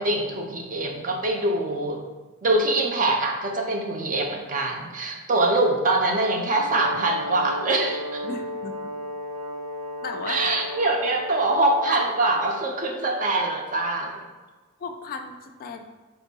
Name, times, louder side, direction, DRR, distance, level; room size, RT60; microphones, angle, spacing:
voice 1, 0.0-2.0 2.4-8.2 10.3-14.2, right 2 dB, 35° right, 2 dB, 0.5 m, -24 dB
Brass instrument, 6.6-12.6, equal, 80° right, 0.7 m, -35 dB
voice 2, 8.2-8.8 10.0-10.4 14.8-15.8, left 4 dB, 40° left, 5 dB, 0.3 m, -35 dB
4.4 x 2.6 x 4.0 m, 1.3 s
head